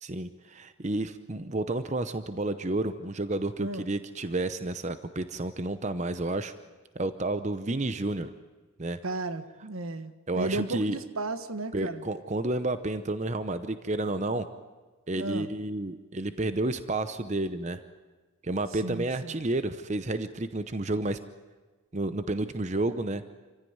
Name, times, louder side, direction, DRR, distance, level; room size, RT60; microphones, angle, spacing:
voice 1, 0.0-6.5 7.0-8.3 8.8-9.0 10.3-11.0 11.7-14.5 15.1-17.8 18.4-21.2 21.9-23.2, right 2 dB, 35° right, 11 dB, 0.7 m, -30 dB
voice 2, 9.0-12.0 15.1-15.5 18.8-19.4, right 2 dB, 75° right, 11 dB, 1.4 m, -34 dB
27.0 x 15.5 x 9.4 m, 1.3 s
head